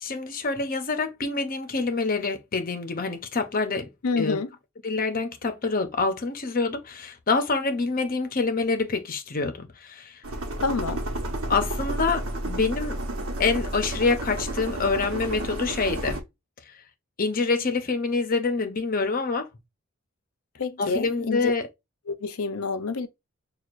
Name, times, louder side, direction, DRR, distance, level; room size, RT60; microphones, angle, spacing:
voice 1, 0.0-4.4 4.8-10.2 11.5-13.0 13.4-16.2 17.2-19.5 20.8-21.7, left 4 dB, 40° left, 0.7 m, -26 dB
voice 2, 4.0-4.5 10.6-11.0 20.6-21.5 22.1-23.1, left 4 dB, 85° left, 0.6 m, -28 dB
sound 1, 10.2-16.2, right 1 dB, 75° right, 1.0 m, -31 dB
6.3 x 2.4 x 2.5 m
head